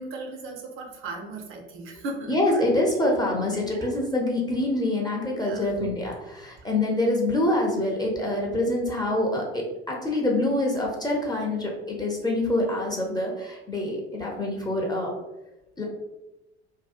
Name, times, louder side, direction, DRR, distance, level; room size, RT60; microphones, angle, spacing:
voice 1, 0.0-2.6 3.5-3.9 5.3-5.6 6.5-6.6, right 2 dB, 40° right, 2 dB, 0.6 m, -37 dB
voice 2, 2.3-15.1 15.8-15.9, left 1 dB, 10° left, -2 dB, 0.5 m, -25 dB
2.7 x 2.2 x 2.4 m, 0.98 s
hypercardioid pair, 65°, 33 cm